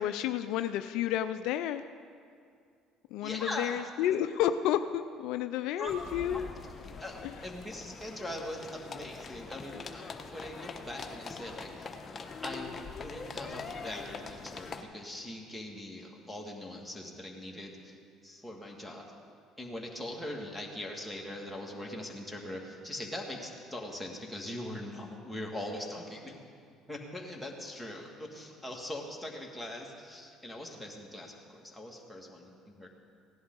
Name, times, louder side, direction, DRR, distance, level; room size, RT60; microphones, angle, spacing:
voice 1, 0.0-1.9 3.1-6.5 7.2-7.4, left 11 dB, 70° left, 10 dB, 0.4 m, -31 dB
voice 2, 3.2-3.8 5.8-5.9 6.3-6.4 7.0-11.9 12.4-17.9 18.2-19.1 19.6-26.4 26.9-32.9, left 1 dB, ahead, -2 dB, 2.4 m, -41 dB
sound 1, 5.8-14.8, left 4 dB, 35° left, 1.1 m, -43 dB
17.0 x 11.0 x 4.1 m, 2.3 s
hypercardioid pair, 70°, 0 cm